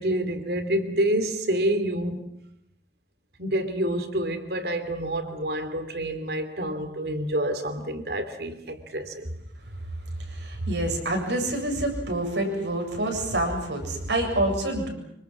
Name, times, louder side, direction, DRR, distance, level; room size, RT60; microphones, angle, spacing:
voice 1, 0.0-2.3 3.4-9.3, right 1 dB, 65° right, 3.2 m, -28 dB
voice 2, 10.2-14.9, right 1 dB, 85° right, 7.7 m, -27 dB
26.5 x 25.0 x 7.5 m
head